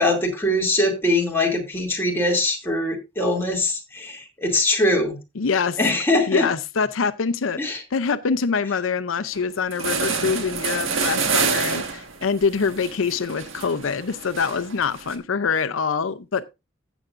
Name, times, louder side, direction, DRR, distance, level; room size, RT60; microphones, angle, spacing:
voice 1, 0.0-5.2 5.8-6.5 7.6-7.8, left 1 dB, 10° left, 2.5 m, -22 dB
voice 2, 5.4-5.8 6.3-16.5, left 5 dB, 90° left, 0.6 m, -25 dB
sound 1, 9.3-9.4 9.7-15.2, right 5 dB, 80° right, 1.5 m, -27 dB
15.5 x 7.2 x 2.5 m
head